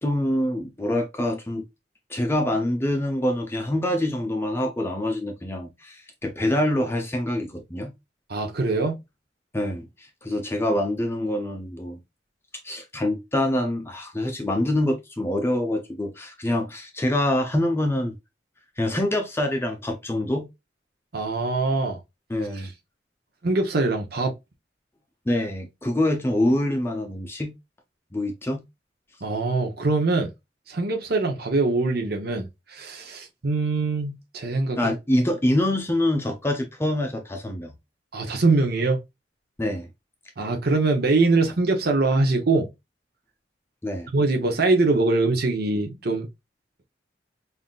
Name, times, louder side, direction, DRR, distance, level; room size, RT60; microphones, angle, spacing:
voice 1, 0.0-1.6 2.1-7.9 9.5-12.0 12.6-18.1 18.8-20.5 22.3-22.7 25.3-27.5 28.1-28.6 34.8-37.7 39.6-39.9 43.8-44.1, left 1 dB, 15° left, 0.6 m, -25 dB
voice 2, 8.3-8.9 21.1-22.0 22.5-22.7 23.4-24.3 29.2-30.3 30.7-34.9 38.1-39.0 40.4-42.7 44.1-46.3, right 3 dB, 60° right, 0.8 m, -23 dB
5.6 x 2.6 x 2.3 m
head